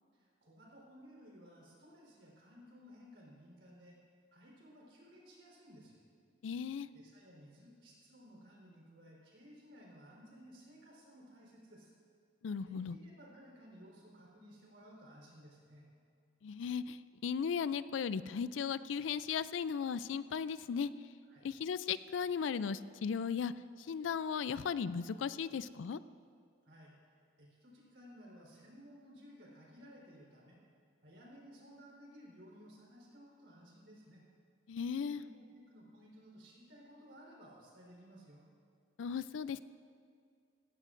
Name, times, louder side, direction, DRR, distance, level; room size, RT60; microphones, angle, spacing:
voice 1, 0.1-4.0 4.3-6.0 6.9-11.9 12.6-15.9 21.2-21.5 26.7-27.0 27.4-30.6 31.0-34.2 35.1-38.4, equal, 65° right, -4 dB, 3.9 m, -57 dB
voice 2, 6.4-6.9 12.4-13.0 16.4-17.0 17.2-20.9 21.4-23.5 23.9-26.0 34.7-35.2 39.0-39.6, left 6 dB, 80° left, 16 dB, 0.4 m, -36 dB
17.0 x 15.5 x 2.5 m, 2.3 s
head